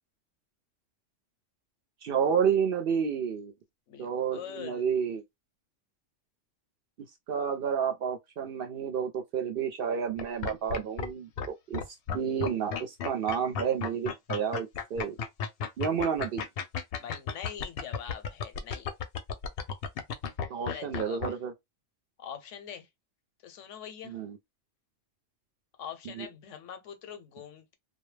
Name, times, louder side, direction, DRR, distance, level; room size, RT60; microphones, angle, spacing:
voice 1, 2.0-3.5 4.0-5.2 7.3-11.3 11.7-11.8 12.1-15.2 15.8-16.5 20.5-21.5 24.0-24.4 26.1-26.3, right 7 dB, 60° right, 0.6 m, -30 dB
voice 2, 3.9-4.8 17.0-18.9 20.7-21.4 22.2-22.9 23.4-24.2 25.8-27.7, left 9 dB, 85° left, 1.0 m, -43 dB
sound 1, 10.2-11.1 11.4-11.5 11.7-21.3, left 6 dB, 65° left, 0.7 m, -33 dB
2.2 x 2.0 x 3.1 m
omnidirectional pair, 1.2 m